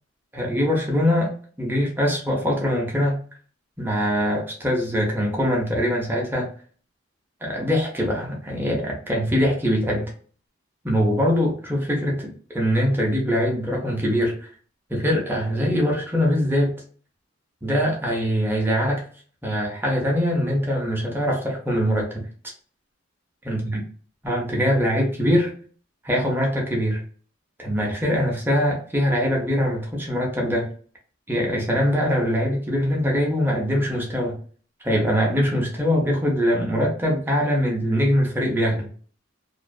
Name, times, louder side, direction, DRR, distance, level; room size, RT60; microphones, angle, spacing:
voice 1, 0.3-1.3 1.6-3.2 3.8-6.5 7.4-10.1 10.8-14.3 14.9-16.7 17.6-19.0 19.4-22.3 23.5-23.8 24.2-25.5 26.0-27.0 27.6-30.7 31.3-34.4 34.8-38.9, equal, 10° right, -1 dB, 0.6 m, -22 dB
2.5 x 2.4 x 2.2 m, 0.43 s
head